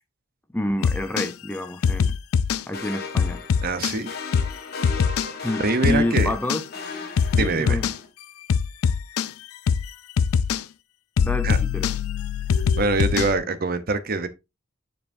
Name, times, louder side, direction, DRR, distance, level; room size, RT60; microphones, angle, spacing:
voice 1, 0.5-2.2 2.7-3.4 5.4-6.6 7.4-7.9 11.2-11.9, left 1 dB, 10° left, 0.5 m, -28 dB
sound 1, 0.8-1.3 1.8-2.6 3.2-4.0 4.3-4.5 4.8-5.3 5.8-6.6 7.2-8.0 8.5-9.3 9.7-9.9 10.2-10.6 11.2-13.4, left 6 dB, 85° left, 0.4 m, -22 dB
sound 2, 2.7-8.1, left 4 dB, 50° left, 1.5 m, -37 dB
voice 2, 3.6-4.1 5.6-6.3 7.4-7.8 11.4-11.6 12.8-14.3, right 3 dB, 45° right, 0.7 m, -24 dB
9.9 x 4.7 x 2.6 m
head